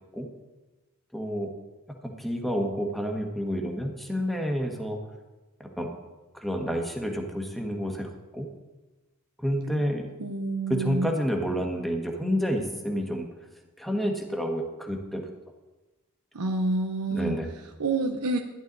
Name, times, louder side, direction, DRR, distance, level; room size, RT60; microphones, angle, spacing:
voice 1, 1.1-1.5 2.0-5.0 5.8-5.9 6.3-8.5 9.4-10.1 10.7-13.3 13.8-15.3 17.1-17.5, equal, ahead, 2 dB, 1.4 m, -29 dB
voice 2, 10.2-11.1 16.3-18.4, right 2 dB, 80° right, 3 dB, 0.8 m, -28 dB
12.5 x 11.0 x 4.0 m, 1.1 s
head